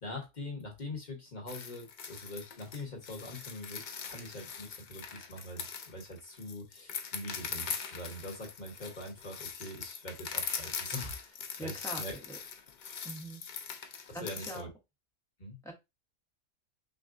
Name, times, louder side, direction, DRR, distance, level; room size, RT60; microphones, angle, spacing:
voice 1, 0.0-12.1 14.1-14.7 15.4-15.6, left 1 dB, 35° left, 1 dB, 1.2 m, -43 dB
sound 1, 1.5-14.6, left 6 dB, 60° left, 0.5 m, -41 dB
voice 2, 11.4-12.4 13.0-13.4 14.1-14.7 15.6-15.7, right 1 dB, 5° left, 0 dB, 0.9 m, -43 dB
6.0 x 2.2 x 2.5 m, 0.22 s
omnidirectional pair, 1.3 m